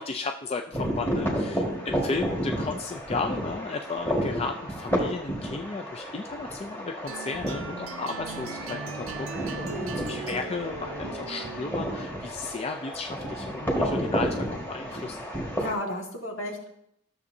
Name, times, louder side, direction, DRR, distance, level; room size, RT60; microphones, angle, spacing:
voice 1, 0.0-9.3 10.0-15.2, left 4 dB, 30° left, 5 dB, 0.3 m, -34 dB
sound 1, 0.7-15.7, equal, 10° left, 1.6 m, -31 dB
sound 2, 7.1-12.2, right 5 dB, 75° right, 0.6 m, -39 dB
voice 2, 9.6-10.0 15.6-16.7, left 1 dB, 70° left, 0 dB, 1.7 m, -34 dB
13.5 x 7.0 x 2.7 m, 0.74 s
head